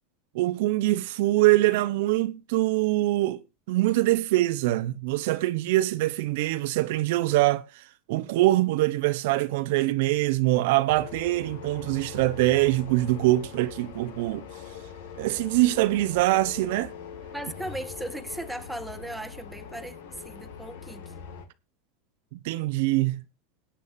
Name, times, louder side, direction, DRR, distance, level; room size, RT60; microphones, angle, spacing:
voice 1, 0.3-3.4 3.7-7.8 8.1-14.4 15.2-16.9 22.3-23.2, right 17 dB, 70° right, 0.9 m, -24 dB
sound 1, 10.9-21.5, left 7 dB, 80° left, 2.2 m, -42 dB
voice 2, 17.3-20.0 20.2-21.1, right 1 dB, ahead, 1.5 m, -37 dB
20.0 x 9.0 x 2.7 m
supercardioid pair, 115°, 0 cm